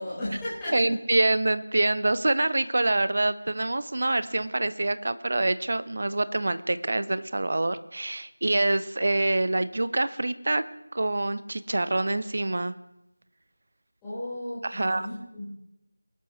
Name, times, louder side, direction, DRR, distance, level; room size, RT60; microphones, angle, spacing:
voice 1, 0.0-0.7 14.0-15.4, left 1 dB, 5° left, -14 dB, 4.7 m, -34 dB
voice 2, 0.7-10.6 10.9-12.7 14.6-15.1, right 2 dB, 45° right, 14 dB, 0.7 m, -26 dB
23.0 x 12.0 x 3.2 m, 0.88 s
figure-of-eight pair, 170°, 0 cm